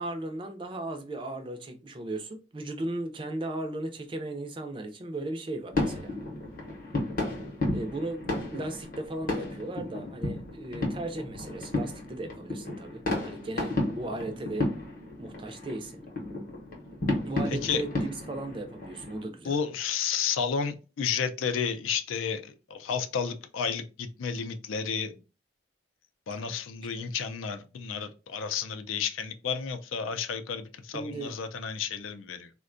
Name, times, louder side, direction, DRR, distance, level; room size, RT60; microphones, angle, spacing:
voice 1, 0.0-6.2 7.7-14.7 15.2-16.0 17.2-19.6 26.4-26.5 30.9-31.3, right 2 dB, 25° right, 0.4 m, -36 dB
sound 1, 5.7-19.3, left 2 dB, 45° left, 0.7 m, -33 dB
voice 2, 17.5-17.8 19.4-25.1 26.3-32.5, left 6 dB, 85° left, 0.4 m, -32 dB
3.5 x 2.2 x 2.4 m
head